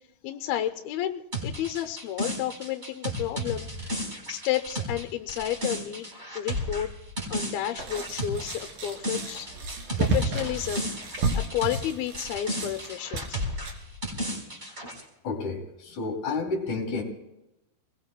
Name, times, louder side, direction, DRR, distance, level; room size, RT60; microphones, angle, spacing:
voice 1, 0.2-3.9 4.3-6.1 6.4-6.9 7.3-9.5 10.0-13.4, left 11 dB, 85° left, 8 dB, 2.6 m, -31 dB
sound 1, 1.3-11.9 12.1-15.0, equal, 15° right, 4.4 m, -33 dB
sound 2, 7.8-13.7, right 2 dB, 70° right, 4.6 m, -32 dB
voice 2, 15.2-17.0, left 3 dB, 50° left, 1 dB, 4.1 m, -30 dB
30.0 x 21.0 x 2.2 m, 0.93 s
omnidirectional pair, 4.3 m